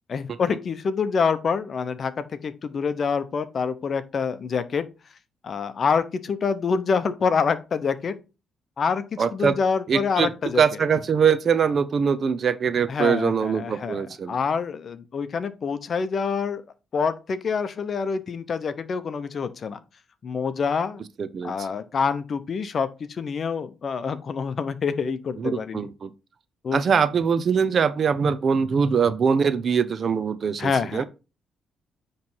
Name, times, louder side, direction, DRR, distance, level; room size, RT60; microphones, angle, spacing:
voice 1, 0.1-4.9 5.4-8.2 8.8-10.6 12.9-16.6 16.9-19.8 20.2-21.0 21.4-25.9 26.6-26.8 30.6-31.1, left 5 dB, 50° left, 0.8 m, -26 dB
voice 2, 9.2-9.6 9.9-10.3 10.6-14.3 21.2-21.5 25.4-26.1 26.7-31.1, right 6 dB, 50° right, 0.6 m, -22 dB
9.5 x 3.2 x 4.5 m
cardioid pair, 90°, 0 cm